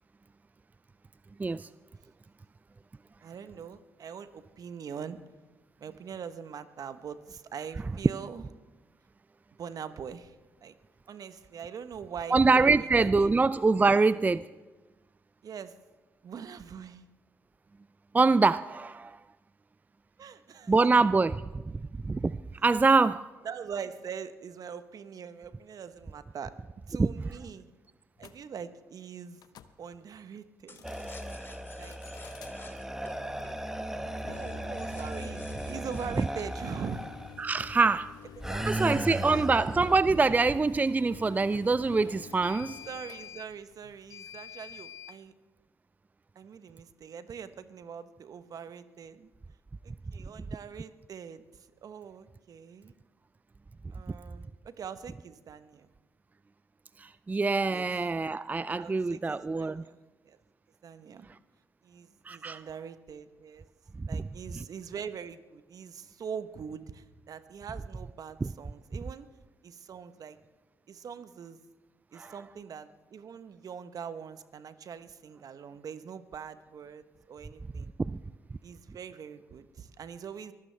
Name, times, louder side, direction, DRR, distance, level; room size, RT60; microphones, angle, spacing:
voice 1, 3.2-5.2 5.8-8.4 9.6-10.4 10.6-10.8 11.1-12.4 12.6-12.9 13.2-13.4 15.4-15.8 16.2-17.1 20.2-20.7 23.4-26.5 26.9-27.7 28.2-29.4 29.8-30.9 31.8-32.0 34.3-37.0 38.4-39.5 42.8-45.3 46.3-49.3 49.8-52.9 53.9-55.9 57.7-57.9 58.8-60.0 60.2-60.4 60.8-61.3 61.8-63.7 64.1-69.3 69.6-70.4 70.9-71.6 72.1-77.9 78.6-80.5, right 7 dB, 55° right, 12 dB, 1.0 m, -43 dB
voice 2, 12.3-14.5 18.1-19.2 20.7-23.2 27.0-27.1 37.4-38.1 38.7-42.8 57.0-59.8 62.3-62.6 64.0-64.1 68.4-68.5 72.2-72.3 78.0-78.2, right 3 dB, 20° right, 16 dB, 0.4 m, -25 dB
sound 1, 28.2-28.3 29.4-29.7 30.6-31.3 31.8-32.5 34.1-45.2, left 9 dB, 65° left, 0.8 m, -49 dB
sound 2, 30.7-37.6 38.1-40.6 41.0-41.1 41.4-41.7 42.1-42.8 43.2-43.7, left 3 dB, 30° left, 2.2 m, -54 dB
sound 3, 30.8-37.3 38.4-40.0, right 1 dB, 5° right, 1.4 m, -36 dB
23.0 x 15.0 x 3.4 m, 1.2 s
hypercardioid pair, 45°, 7 cm